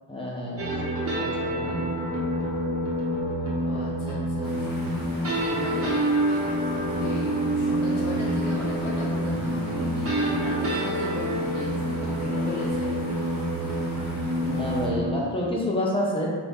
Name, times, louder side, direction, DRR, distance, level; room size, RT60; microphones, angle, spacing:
voice 1, 0.1-0.7 1.1-1.9 14.4-16.3, left 1 dB, 10° left, -4 dB, 0.6 m, -28 dB
sound 1, 0.6-15.2, right 1 dB, 30° right, 0.7 m, -27 dB
voice 2, 3.6-4.8 5.5-6.4 6.9-13.0, left 1 dB, 85° left, -5 dB, 1.1 m, -37 dB
sound 2, 4.4-14.9, left 1 dB, 45° left, 1.0 m, -42 dB
4.1 x 2.5 x 3.4 m, 1.5 s
wide cardioid pair, 180°, 47 cm